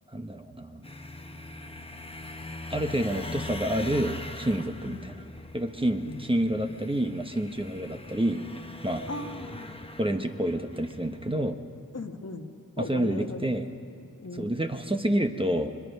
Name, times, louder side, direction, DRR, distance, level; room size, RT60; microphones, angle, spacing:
voice 1, 0.1-0.8 2.7-5.2 5.5-8.4 8.8-9.0 10.0-11.6 12.8-13.7 14.3-15.7, right 1 dB, 15° right, 5 dB, 1.1 m, -28 dB
sound 1, 0.8-11.3, left 1 dB, 15° left, 1.1 m, -41 dB
voice 2, 6.0-6.8 9.1-9.8 11.9-13.5 14.2-14.6, left 3 dB, 45° left, 5 dB, 1.5 m, -38 dB
23.5 x 21.5 x 5.4 m, 2.6 s
cardioid pair, 50°, 35 cm